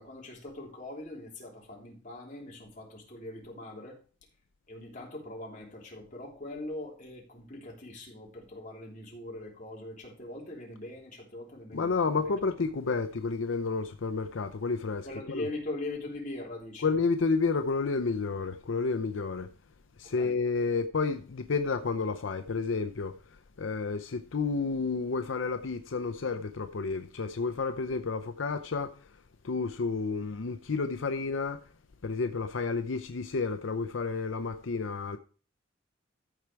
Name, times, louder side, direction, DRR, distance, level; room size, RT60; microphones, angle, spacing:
voice 1, 0.0-4.0 4.7-12.3 15.0-16.9 20.0-20.3, left 2 dB, 40° left, 3.2 m, -41 dB
voice 2, 11.7-15.4 16.8-19.5 20.0-23.1 23.6-28.9 29.4-31.6 32.0-35.2, left 4 dB, 80° left, 0.6 m, -30 dB
14.0 x 4.7 x 4.5 m
head